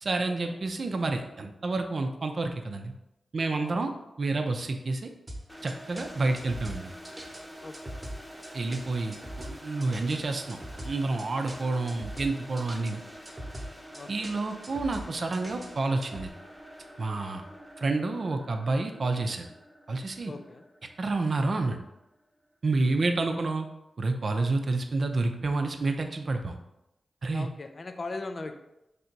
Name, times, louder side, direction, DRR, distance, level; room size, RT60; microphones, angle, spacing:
voice 1, 0.0-2.9 3.3-3.9 4.2-5.1 5.6-6.9 8.5-13.0 14.1-16.3 17.0-17.4 17.8-19.5 19.9-20.3 21.0-21.8 22.6-23.7 24.0-26.6 27.2-27.5, right 3 dB, 60° right, 5 dB, 0.5 m, -29 dB
sound 1, 5.3-16.3, equal, 30° right, 1.0 m, -42 dB
sound 2, 5.5-22.3, equal, ahead, 0.9 m, -47 dB
voice 2, 20.2-20.6 27.3-28.6, left 3 dB, 50° left, 7 dB, 0.4 m, -39 dB
3.4 x 2.7 x 4.5 m, 0.91 s
cardioid pair, 45°, 0 cm